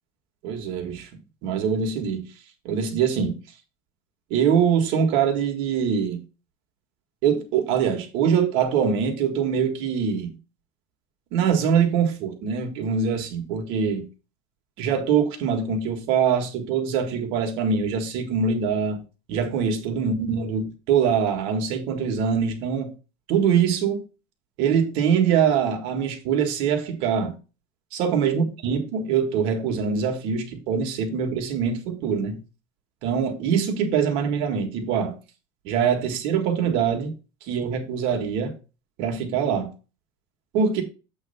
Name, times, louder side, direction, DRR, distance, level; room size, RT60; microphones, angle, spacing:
voice 1, 0.4-2.3 2.6-3.4 4.3-6.2 7.2-10.3 11.3-14.1 14.8-19.0 19.3-22.9 23.3-24.0 24.6-27.3 27.9-32.4 33.0-35.2 35.6-37.1 37.5-38.5 39.0-39.7 40.5-40.8, right 7 dB, 55° right, 1.7 m, -23 dB
7.9 x 3.3 x 5.5 m
cardioid pair, 175°, 11 cm